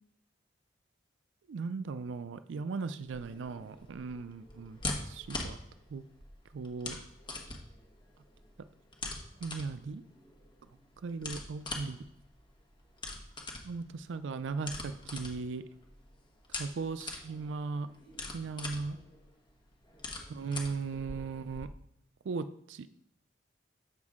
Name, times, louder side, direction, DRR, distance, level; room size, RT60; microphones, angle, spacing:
voice 1, 1.5-4.8 5.1-5.6 5.9-6.0 6.5-7.0 9.4-10.0 11.0-12.0 13.6-15.6 16.5-17.9 18.3-19.0 20.3-21.7 22.3-22.9, right 4 dB, 90° right, 12 dB, 0.4 m, -37 dB
sound 1, 3.1-21.7, left 2 dB, 25° left, 1.2 m, -43 dB
8.0 x 6.2 x 3.6 m, 0.77 s
head